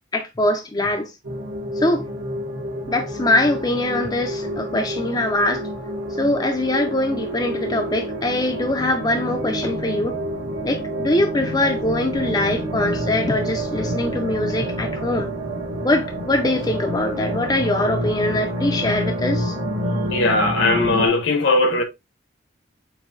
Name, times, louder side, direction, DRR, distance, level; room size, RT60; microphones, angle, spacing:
voice 1, 0.1-1.1 1.8-2.0 2.9-5.7 6.2-10.2 10.6-15.3 15.8-19.5, left 1 dB, 20° left, 0.5 m, -22 dB
sound 1, 1.2-21.1, equal, 65° right, 1.2 m, -28 dB
voice 2, 20.1-21.8, left 2 dB, 70° left, 1.1 m, -19 dB
7.2 x 2.7 x 2.5 m
head